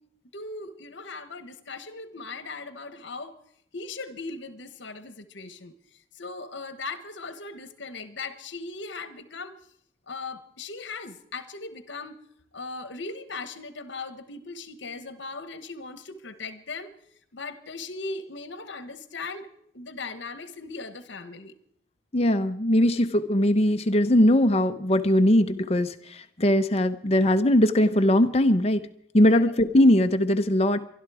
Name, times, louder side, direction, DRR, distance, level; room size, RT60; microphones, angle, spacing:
voice 1, 0.3-3.4 3.7-5.7 6.1-9.6 10.1-12.2 12.5-16.9 17.3-19.5 19.7-21.5 29.3-29.4, left 3 dB, 60° left, 12 dB, 1.2 m, -38 dB
voice 2, 22.1-28.8 29.1-30.8, left 1 dB, 30° left, 8 dB, 0.7 m, -20 dB
23.5 x 12.0 x 4.9 m, 0.73 s
head